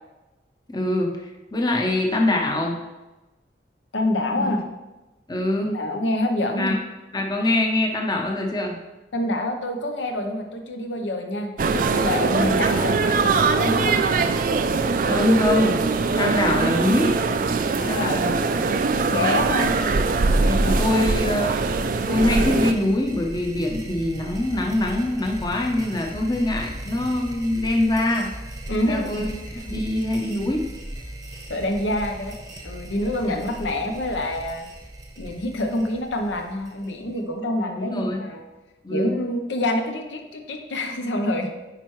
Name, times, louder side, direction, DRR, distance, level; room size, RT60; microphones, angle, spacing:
voice 1, 0.7-2.8 4.4-4.5 5.3-5.7 6.6-6.8 7.1-8.8 12.3-12.6 15.0-15.8 16.2-17.2 17.9-18.4 18.9-19.3 20.4-21.6 22.1-28.3 28.8-29.3 29.7-30.7 33.2-33.4 37.7-38.2 38.8-39.2, left 1 dB, 20° left, 1 dB, 0.7 m, -24 dB
voice 2, 3.9-4.6 5.6-6.8 9.1-14.0 17.7-18.6 19.1-19.8 20.4-21.3 28.7-29.3 29.5-29.6 31.5-32.4 32.6-34.7 35.2-38.4 38.9-41.5, left 1 dB, 80° left, 4 dB, 0.8 m, -27 dB
sound 1, 11.6-22.7, right 4 dB, 45° right, 0.3 m, -22 dB
sound 2, 18.7-37.3, right 1 dB, 20° right, 0.8 m, -39 dB
9.1 x 4.5 x 3.1 m, 1.1 s
head